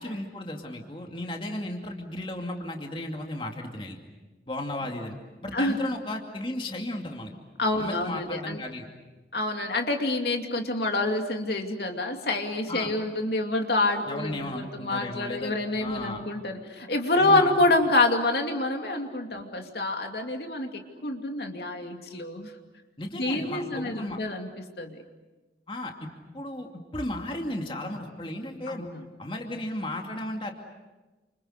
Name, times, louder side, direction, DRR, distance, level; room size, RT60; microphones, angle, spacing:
voice 1, 0.0-4.0 4.5-5.2 5.4-7.3 7.8-8.9 12.7-12.9 14.1-15.5 15.8-16.2 17.2-17.5 23.0-24.2 25.7-26.1 26.3-28.8 29.2-30.5, left 1 dB, 30° left, 2 dB, 2.5 m, -34 dB
voice 2, 7.6-8.6 9.3-22.5 23.1-24.5 24.8-25.0 28.7-29.0, left 2 dB, 65° left, 3 dB, 2.7 m, -27 dB
30.0 x 27.5 x 6.6 m, 1.2 s
head